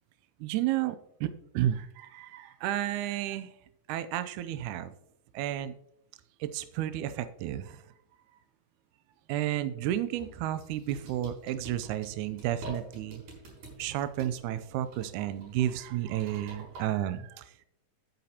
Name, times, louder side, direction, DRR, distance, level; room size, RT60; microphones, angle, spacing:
voice 1, 0.4-3.5 3.9-4.9 5.3-5.7 6.4-7.8 9.3-13.2 13.8-17.5, right 12 dB, 80° right, 11 dB, 1.8 m, -32 dB
sound 1, 10.1-16.8, right 2 dB, 65° right, 6.0 m, -48 dB
12.0 x 9.2 x 2.8 m, 0.78 s
omnidirectional pair, 3.9 m